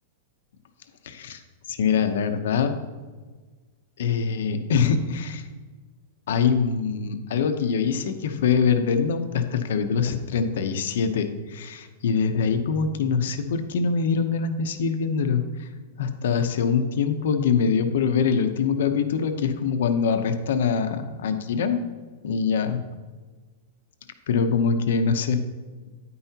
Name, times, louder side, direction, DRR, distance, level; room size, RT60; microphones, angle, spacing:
voice 1, 1.0-1.4 1.7-2.8 4.0-5.5 6.3-15.7 16.0-21.8 22.2-22.8 24.3-25.4, left 6 dB, 70° left, 8 dB, 0.8 m, -24 dB
9.9 x 9.5 x 2.9 m, 1.4 s
supercardioid pair, 175°, 0 cm